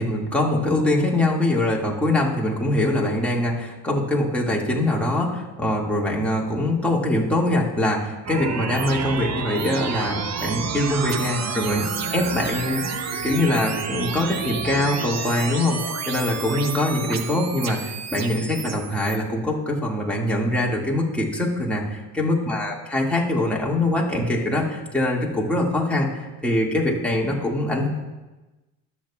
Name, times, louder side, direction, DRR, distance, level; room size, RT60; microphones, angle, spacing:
voice 1, 0.0-11.9 12.1-27.9, left 1 dB, 5° left, -3 dB, 2.1 m, -23 dB
sound 1, 8.3-19.2, right 6 dB, 35° right, 0.9 m, -30 dB
20.5 x 7.3 x 2.4 m, 1.1 s
supercardioid pair, 80°, 44 cm